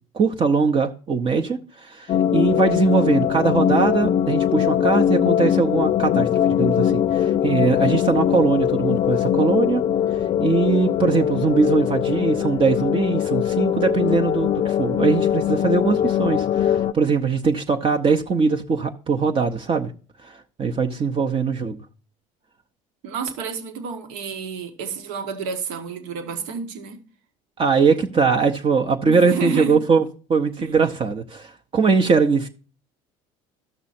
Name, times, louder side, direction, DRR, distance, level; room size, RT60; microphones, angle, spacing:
voice 1, 0.1-9.8 10.4-19.9 20.2-21.8 27.6-30.0 30.3-32.5, right 5 dB, 35° right, 0.8 m, -21 dB
sound 1, 2.1-16.9, left 10 dB, 40° left, 0.4 m, -21 dB
voice 2, 23.0-27.0 29.1-29.8 30.6-30.7, right 6 dB, 75° right, 1.6 m, -30 dB
13.5 x 6.1 x 4.3 m
supercardioid pair, 85°, 16 cm